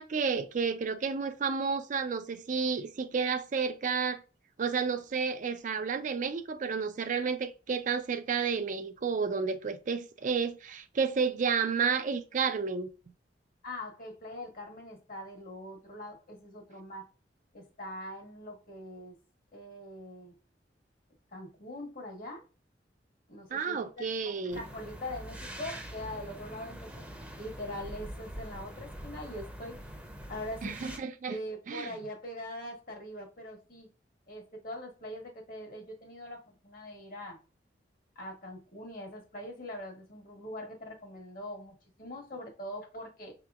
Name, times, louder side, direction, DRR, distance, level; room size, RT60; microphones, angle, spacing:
voice 1, 0.0-4.2 4.6-12.9 23.5-24.6 30.6-31.4 31.7-31.9, right 5 dB, 45° right, 0.4 m, -31 dB
voice 2, 13.6-17.1 17.5-19.2 19.5-20.3 21.3-22.4 23.3-27.1 27.4-29.8 30.3-30.9 31.3-33.9 34.3-37.4 38.1-43.3, left 1 dB, 55° left, 1.2 m, -42 dB
sound 1, 24.5-31.0, equal, 5° right, 0.6 m, -44 dB
5.8 x 2.8 x 2.3 m
head